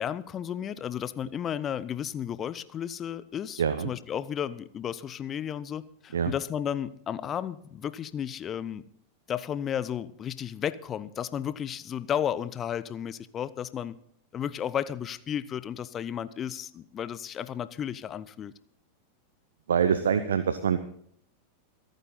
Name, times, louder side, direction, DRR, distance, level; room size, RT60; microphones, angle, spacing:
voice 1, 0.0-8.8 9.3-13.9 14.3-18.5, left 9 dB, 25° left, 17 dB, 0.7 m, -33 dB
voice 2, 3.6-3.9 6.1-6.3 19.7-20.8, right 7 dB, 65° right, 12 dB, 0.7 m, -25 dB
26.0 x 9.1 x 4.0 m, 0.66 s
figure-of-eight pair, 90°, 0 cm